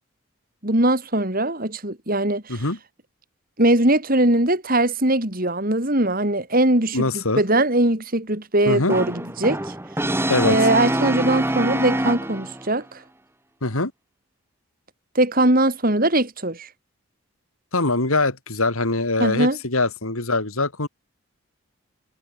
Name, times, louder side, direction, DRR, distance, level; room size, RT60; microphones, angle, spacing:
voice 1, 0.6-2.6 3.6-9.7 10.4-13.0 15.1-16.7 19.2-19.6, right 1 dB, 40° right, 3.9 m, -21 dB
voice 2, 6.9-7.4 8.7-8.9 10.3-10.6 13.6-13.9 17.7-20.9, left 2 dB, 75° left, 3.6 m, -23 dB
Brass instrument, 8.9-12.7, right 1 dB, 10° right, 2.3 m, -25 dB
head